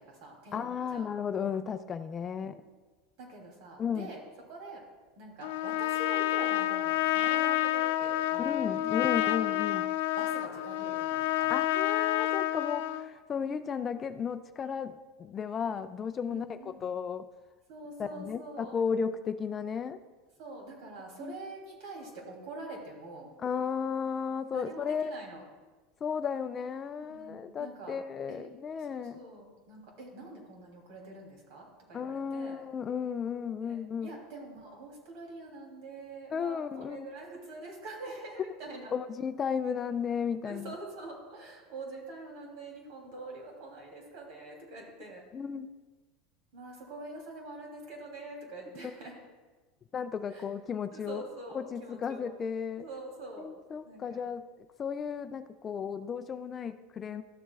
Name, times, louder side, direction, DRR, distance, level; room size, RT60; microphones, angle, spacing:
voice 1, 0.0-1.1 2.5-2.7 3.2-4.8 5.2-9.4 9.7-9.8 10.1-11.5 16.3-16.9 17.7-18.8 20.4-23.3 24.5-25.4 27.0-28.0 28.3-28.5 28.9-32.6 33.6-38.9 40.4-45.2 46.5-49.2 50.3-50.4 50.9-52.3 52.7-53.5 53.8-54.2, right 2 dB, 60° right, 0 dB, 2.9 m, -45 dB
voice 2, 0.5-2.6 3.8-4.1 8.4-9.9 11.5-17.2 18.0-20.0 21.2-21.3 23.4-25.1 26.0-29.2 31.9-34.1 36.3-37.1 38.9-40.7 45.3-45.7 49.9-51.2 51.5-52.9 53.4-54.4 54.8-57.2, left 6 dB, 25° left, 10 dB, 0.3 m, -34 dB
Trumpet, 5.4-13.1, left 14 dB, 85° left, 0.5 m, -29 dB
13.0 x 7.2 x 2.3 m, 1.3 s
supercardioid pair, 145°, 0 cm